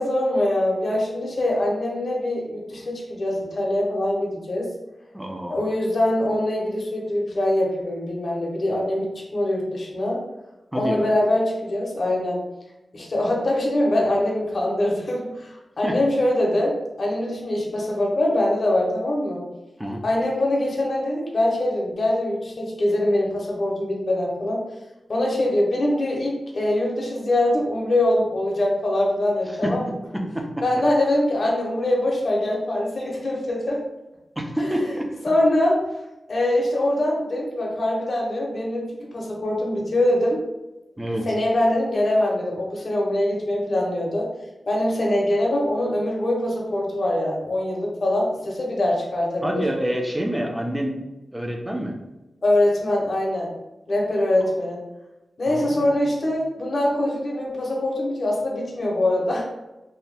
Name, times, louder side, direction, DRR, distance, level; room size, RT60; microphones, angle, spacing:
voice 1, 0.0-4.7 5.5-10.2 10.8-12.4 12.9-19.4 20.0-24.6 25.1-29.9 30.6-33.8 34.6-34.7 35.2-35.8 36.3-40.4 41.3-44.3 44.7-49.6 52.4-53.5 53.9-54.8 55.4-59.4, left 1 dB, 50° left, -2 dB, 0.7 m, -23 dB
voice 2, 5.1-5.7 10.7-11.0 15.8-15.9 19.8-20.0 29.6-29.7 30.3-30.4 34.4-35.1 41.0-41.3 49.4-51.0 51.3-51.9 55.5-56.3, equal, 10° right, 0 dB, 0.4 m, -27 dB
2.7 x 2.2 x 3.2 m, 1.0 s
wide cardioid pair, 145°, 0 cm